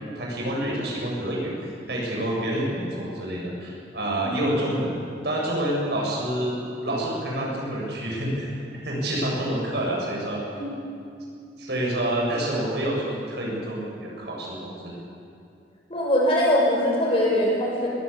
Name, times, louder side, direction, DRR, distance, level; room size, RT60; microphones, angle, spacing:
voice 1, 0.0-1.5 1.9-4.9 5.2-6.5 6.8-8.5 8.8-10.4 11.6-14.9, right 1 dB, 65° right, -3 dB, 7.6 m, -28 dB
voice 2, 4.1-4.4 10.5-10.7 15.9-17.9, left 1 dB, 30° left, -3 dB, 6.2 m, -22 dB
21.0 x 18.5 x 8.6 m, 2.4 s
head